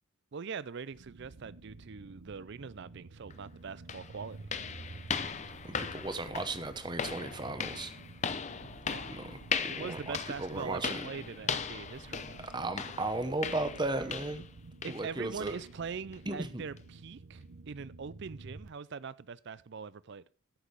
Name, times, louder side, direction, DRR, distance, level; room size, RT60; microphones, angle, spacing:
voice 1, 0.3-4.4 8.8-9.2 9.7-12.4 14.8-20.2, right 5 dB, 50° right, 0.4 m, -42 dB
sound 1, 0.9-18.7, right 3 dB, 75° right, 0.8 m, -51 dB
sound 2, 3.3-3.4 3.9-14.5 14.8-15.1 15.5-15.6 16.1-16.2 16.8-16.9, left 6 dB, 30° left, 0.6 m, -38 dB
voice 2, 5.6-7.9 9.1-9.3 9.6-11.0 12.4-14.4 14.9-15.6 16.3-16.7, right 2 dB, 20° right, 0.9 m, -36 dB
13.5 x 6.1 x 4.8 m
head